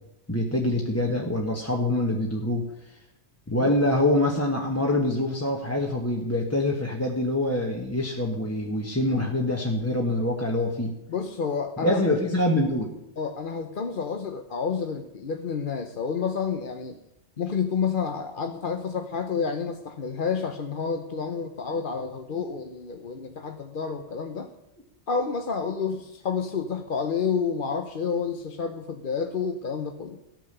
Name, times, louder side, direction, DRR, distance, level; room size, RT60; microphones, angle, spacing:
voice 1, 0.3-3.0 3.5-10.9 11.8-12.9, left 1 dB, 15° left, -1 dB, 1.3 m, -25 dB
voice 2, 11.1-12.0 13.2-17.0 17.4-24.5 25.1-30.2, left 6 dB, 50° left, 5 dB, 1.0 m, -29 dB
14.5 x 9.2 x 6.7 m, 0.84 s
omnidirectional pair, 1.1 m